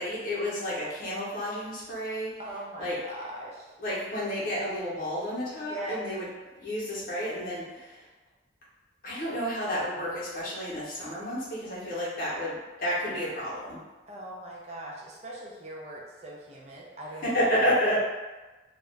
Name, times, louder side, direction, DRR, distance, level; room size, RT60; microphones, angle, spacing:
voice 1, 0.0-2.3 2.8-3.0 3.8-6.3 6.5-8.1 9.0-13.8 17.2-18.0, equal, 50° left, -7 dB, 0.8 m, -30 dB
voice 2, 2.4-3.7 5.6-6.0 14.1-18.0, right 1 dB, 35° right, -3 dB, 0.5 m, -40 dB
2.4 x 2.1 x 3.1 m, 1.2 s
head